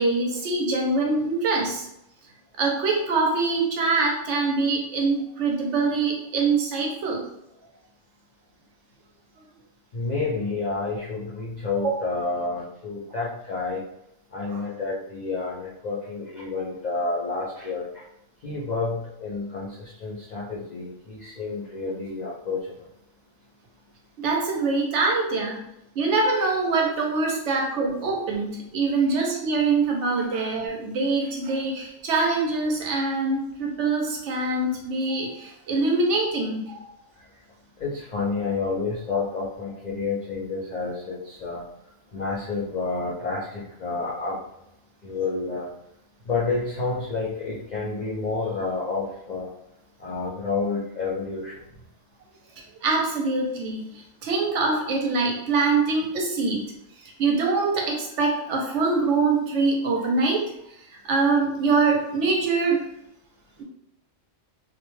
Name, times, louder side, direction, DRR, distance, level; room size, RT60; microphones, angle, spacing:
voice 1, 0.0-1.9 2.6-7.2 11.8-11.9 14.5-14.6 24.2-25.6 26.0-36.8 52.8-56.7 57.0-60.5 61.0-62.9 63.6-63.7, right 3 dB, 70° right, 0 dB, 0.8 m, -24 dB
voice 2, 9.9-13.8 14.3-18.0 18.4-22.7 37.8-41.6 42.1-44.4 45.0-45.7 46.3-49.5 50.0-51.7, left 3 dB, 70° left, -6 dB, 0.4 m, -29 dB
2.4 x 2.1 x 3.0 m, 0.81 s
omnidirectional pair, 1.4 m